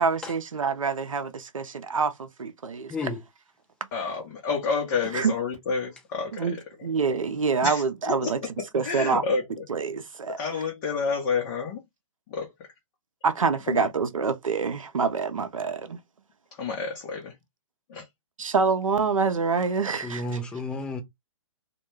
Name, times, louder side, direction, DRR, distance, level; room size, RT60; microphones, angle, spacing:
voice 1, 0.0-2.9 5.1-5.3 6.4-6.5 6.8-8.4 8.7-9.2 9.7-10.4 13.2-16.0 18.4-20.2, right 5 dB, 90° right, 0.5 m, -26 dB
voice 2, 2.9-3.2 19.9-21.0, left 2 dB, 5° left, 0.3 m, -32 dB
voice 3, 3.9-6.6 7.6-9.6 10.3-11.8 12.3-12.7 13.7-13.9 16.5-17.4 17.9-18.1, left 5 dB, 35° left, 0.7 m, -30 dB
2.2 x 2.2 x 3.1 m
hypercardioid pair, 135°, 17 cm